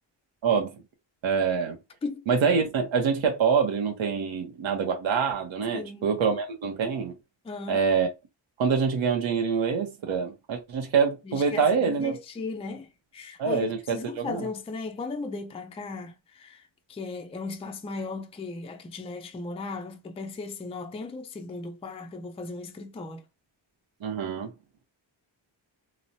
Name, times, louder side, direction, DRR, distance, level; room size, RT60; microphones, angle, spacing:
voice 1, 0.4-0.7 1.2-1.8 2.3-7.1 7.7-8.1 8.6-12.2 13.4-14.5 24.0-24.5, right 6 dB, 75° right, 0.8 m, -25 dB
voice 2, 5.7-6.1 7.4-7.8 11.2-23.2, left 3 dB, 15° left, 0.3 m, -36 dB
3.0 x 2.0 x 2.7 m
wide cardioid pair, 105°, 47 cm